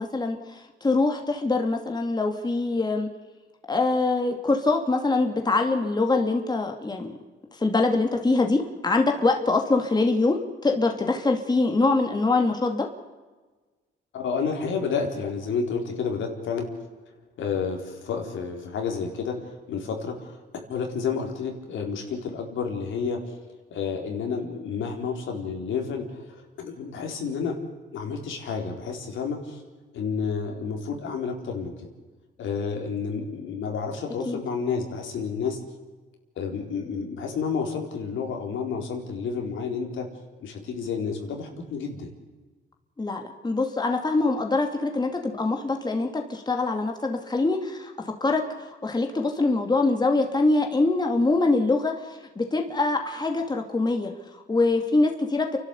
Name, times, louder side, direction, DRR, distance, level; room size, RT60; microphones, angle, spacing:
voice 1, 0.0-3.1 3.7-7.1 7.5-12.9 34.3-34.4 43.0-47.9 48.2-48.4 48.8-55.6, left 3 dB, 20° left, 3 dB, 2.6 m, -24 dB
voice 2, 14.1-16.7 17.4-20.4 20.7-23.3 23.7-27.6 27.9-29.6 29.9-31.9 32.4-35.6 36.4-40.1 40.4-42.1, left 5 dB, 75° left, 2 dB, 4.3 m, -30 dB
29.5 x 12.0 x 8.4 m, 1.3 s
cardioid pair, 90°, 20 cm